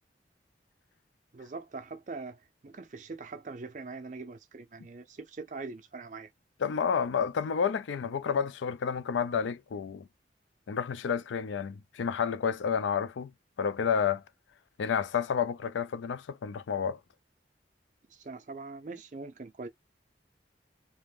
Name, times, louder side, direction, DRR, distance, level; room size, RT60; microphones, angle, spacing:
voice 1, 1.3-6.3 18.1-19.7, right 3 dB, 45° right, 0.5 m, -42 dB
voice 2, 6.6-10.1 10.7-13.3 13.6-14.2 14.8-17.0, left 6 dB, 90° left, 0.4 m, -30 dB
2.5 x 2.1 x 3.2 m
head